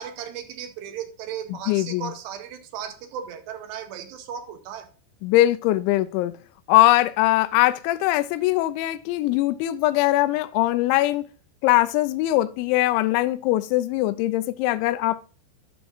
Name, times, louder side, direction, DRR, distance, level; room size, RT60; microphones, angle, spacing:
voice 1, 0.0-4.9, right 8 dB, 80° right, 2.7 m, -36 dB
voice 2, 1.5-2.1 5.2-6.3 6.7-11.3 11.6-15.2, left 16 dB, 85° left, 2.9 m, -21 dB
12.0 x 6.1 x 2.5 m
omnidirectional pair, 5.2 m